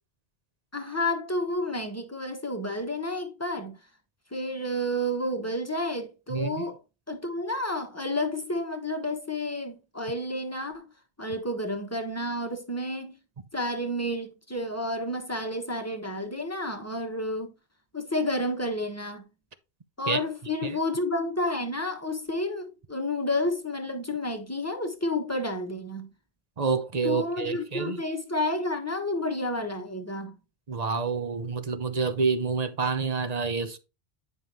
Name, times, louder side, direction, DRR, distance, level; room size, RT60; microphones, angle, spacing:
voice 1, 0.7-3.8 4.3-6.8 7.1-10.9 11.2-13.2 13.5-17.5 17.9-19.2 20.0-26.1 27.0-30.4, left 1 dB, 15° left, 1.2 m, -30 dB
voice 2, 6.3-6.6 20.1-20.2 20.6-20.7 26.6-28.0 30.7-33.8, right 5 dB, 40° right, 0.9 m, -28 dB
9.7 x 5.4 x 3.0 m
omnidirectional pair, 1.1 m